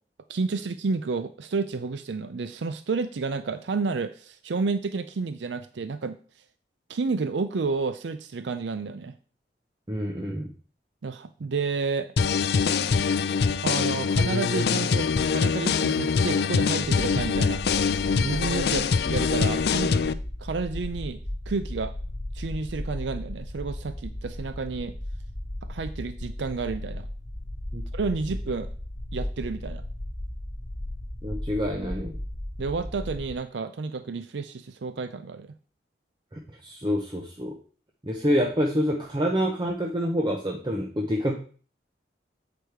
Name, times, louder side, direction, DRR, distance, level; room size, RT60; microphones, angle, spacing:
voice 1, 0.3-6.2 6.9-9.1 11.0-12.1 13.6-17.6 18.2-20.0 20.4-21.9 22.3-25.0 25.7-27.1 27.9-28.7 29.1-29.8 32.6-35.5, right 4 dB, 85° right, 11 dB, 0.5 m, -30 dB
voice 2, 9.9-10.5 27.7-27.8 31.2-32.2 36.3-37.6 38.0-41.3, equal, 25° right, 1 dB, 0.7 m, -27 dB
sound 1, 12.2-20.1, left 5 dB, 65° left, 0.4 m, -24 dB
sound 2, 16.8-33.4, left 1 dB, 30° left, 1.0 m, -36 dB
8.2 x 5.0 x 4.5 m, 0.41 s
head